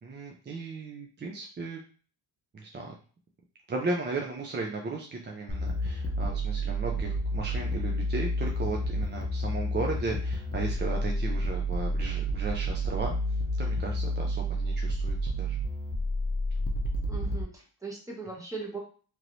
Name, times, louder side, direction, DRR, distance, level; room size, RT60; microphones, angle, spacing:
voice 1, 0.0-1.8 2.5-2.9 3.7-13.2 13.6-15.6, right 3 dB, 25° right, 0 dB, 0.4 m, -35 dB
sound 1, 5.5-17.4, equal, 30° left, 0.6 m, -30 dB
voice 2, 17.1-18.8, right 4 dB, 10° right, -2 dB, 1.1 m, -39 dB
3.1 x 3.0 x 2.6 m, 0.40 s
cardioid pair, 115°, 44 cm